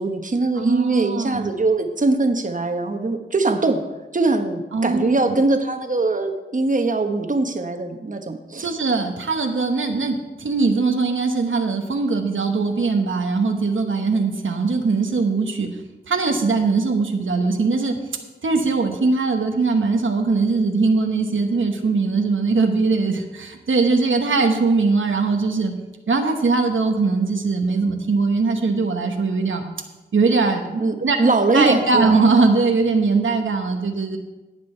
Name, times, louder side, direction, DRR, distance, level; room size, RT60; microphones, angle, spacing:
voice 1, 0.0-3.8 4.1-8.8 30.8-32.2, right 3 dB, 40° right, 6 dB, 1.0 m, -21 dB
voice 2, 0.6-1.5 4.7-5.3 8.6-15.7 16.1-18.0 18.4-25.7 26.1-29.6 30.1-31.2 31.5-34.2, right 4 dB, 85° right, 4 dB, 1.1 m, -21 dB
18.0 x 6.2 x 4.4 m, 1.1 s
wide cardioid pair, 55°, 20 cm